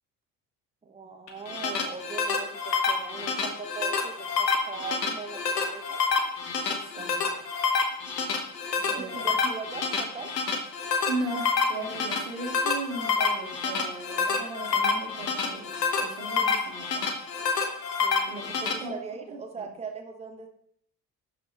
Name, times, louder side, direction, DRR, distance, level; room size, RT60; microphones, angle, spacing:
voice 1, 0.8-6.0 6.6-7.4 8.9-10.3 18.0-20.5, right 4 dB, 15° right, 3 dB, 1.0 m, -40 dB
sound 1, 1.3-18.7, left 5 dB, 80° left, 0.8 m, -28 dB
voice 2, 7.0-7.3 8.8-9.3 11.1-17.1 18.3-18.4 18.8-19.0 19.3-19.7, right 2 dB, 65° right, 2 dB, 1.5 m, -37 dB
11.0 x 4.1 x 2.9 m, 0.66 s
figure-of-eight pair, 50°, 48 cm